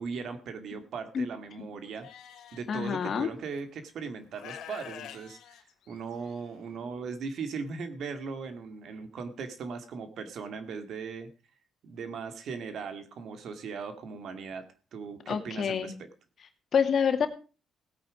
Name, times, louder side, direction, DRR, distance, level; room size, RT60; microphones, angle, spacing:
voice 1, 0.0-2.1 2.5-5.6 5.9-11.3 11.8-15.9, right 5 dB, 65° right, 9 dB, 2.2 m, -38 dB
Livestock farm animals working animals, 2.0-2.6 3.6-3.7 4.3-6.4, left 10 dB, 80° left, 1.6 m, -46 dB
voice 2, 2.7-3.3 15.3-15.9 16.7-17.3, left 7 dB, 55° left, 7 dB, 2.2 m, -27 dB
17.0 x 8.8 x 5.0 m, 0.35 s
cardioid pair, 90°, 0 cm